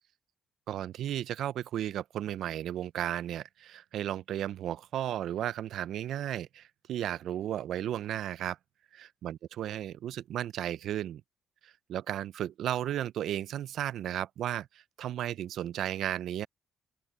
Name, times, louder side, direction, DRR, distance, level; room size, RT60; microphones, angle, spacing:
voice 1, 0.7-8.6 8.9-11.2 11.6-16.5, right 11 dB, 75° right, 0.4 m, -34 dB
open air
cardioid pair, 90°, 0 cm